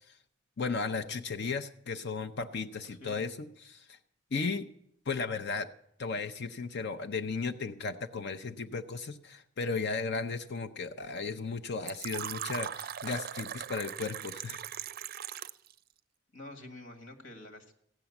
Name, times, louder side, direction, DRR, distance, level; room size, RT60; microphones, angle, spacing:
voice 1, 0.6-4.0 4.3-4.7 5.1-5.7 6.0-14.6, left 4 dB, 60° left, 8 dB, 0.6 m, -35 dB
voice 2, 2.9-3.2 16.3-17.7, left 2 dB, 80° left, 5 dB, 1.9 m, -48 dB
Fill (with liquid), 11.9-15.7, right 9 dB, 50° right, 0.5 m, -39 dB
15.0 x 9.1 x 7.1 m, 0.74 s
head